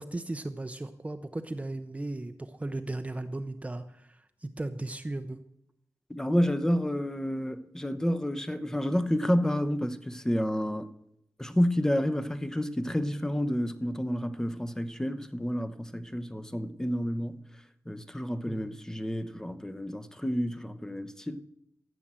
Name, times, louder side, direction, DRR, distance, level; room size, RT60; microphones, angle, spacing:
voice 1, 0.0-5.4 18.5-18.7, right 2 dB, 20° right, 0.7 m, -36 dB
voice 2, 6.1-10.9 11.4-17.4 17.9-21.4, equal, 10° left, 0.9 m, -29 dB
14.0 x 8.3 x 7.6 m
wide cardioid pair, 90°, 6 cm